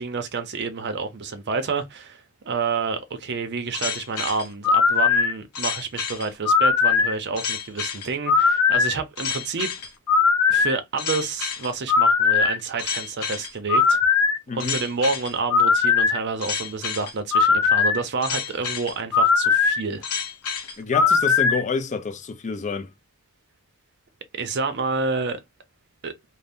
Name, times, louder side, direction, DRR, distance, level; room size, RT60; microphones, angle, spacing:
voice 1, 0.0-9.7 10.5-14.0 14.5-20.0 24.3-25.4 26.0-26.1, right 4 dB, 50° right, 0.5 m, -29 dB
sound 1, 3.7-21.6, left 5 dB, 85° left, 0.7 m, -21 dB
voice 2, 14.5-14.8 20.8-22.9, left 5 dB, 30° left, 0.4 m, -28 dB
2.6 x 2.0 x 3.4 m
head